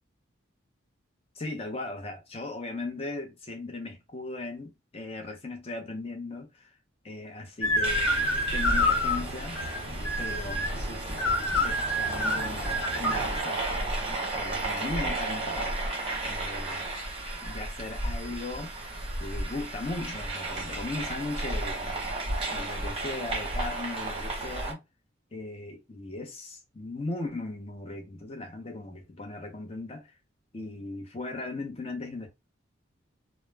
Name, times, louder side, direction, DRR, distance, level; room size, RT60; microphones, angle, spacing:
voice 1, 1.3-6.7 7.0-9.6 10.2-15.8 16.2-16.9 17.4-18.7 19.2-22.2 22.5-24.8 25.3-30.2 30.5-32.3, left 2 dB, 30° left, 0.6 m, -38 dB
sound 1, 7.6-13.4, left 1 dB, 80° left, 0.7 m, -28 dB
sound 2, 7.8-24.7, right 2 dB, 30° right, 0.7 m, -33 dB
2.2 x 2.0 x 3.2 m
head